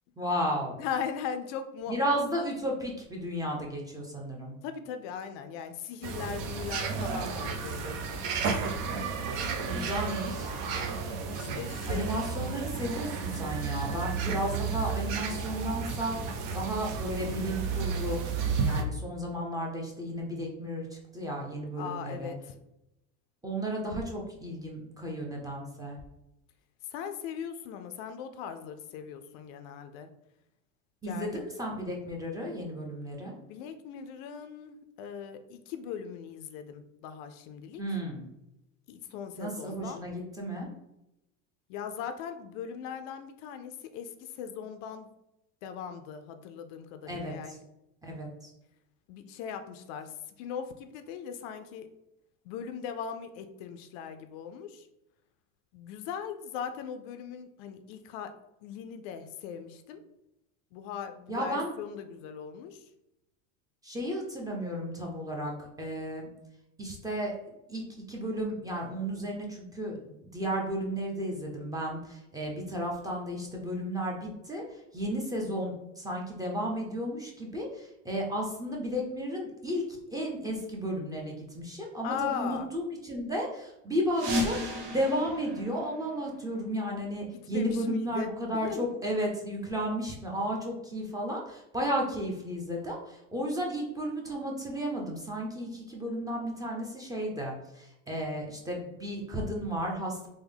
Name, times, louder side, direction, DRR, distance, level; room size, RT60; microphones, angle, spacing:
voice 1, 0.2-0.8 1.9-4.6 9.6-10.5 11.9-16.2 16.5-18.2 18.6-22.3 23.4-26.0 31.0-33.3 37.8-38.2 39.4-40.7 47.1-47.3 48.0-48.5 61.3-61.7 63.8-66.3 66.8-67.3 67.7-100.3, equal, 10° right, -2 dB, 0.6 m, -33 dB
voice 2, 0.8-2.0 4.6-8.0 11.3-12.1 21.8-22.5 26.9-30.1 31.1-31.4 33.5-37.8 38.9-40.0 41.7-45.1 45.6-47.6 49.1-51.9 52.4-54.9 55.7-58.3 58.6-60.0 60.7-62.9 82.0-82.7 87.3-88.9, left 7 dB, 65° left, 8 dB, 0.5 m, -39 dB
sound 1, 6.0-18.8, right 5 dB, 55° right, 0.6 m, -32 dB
sound 2, 84.1-86.7, left 1 dB, 70° right, 1.1 m, -34 dB
3.5 x 2.1 x 3.4 m, 0.88 s
supercardioid pair, 120°, 39 cm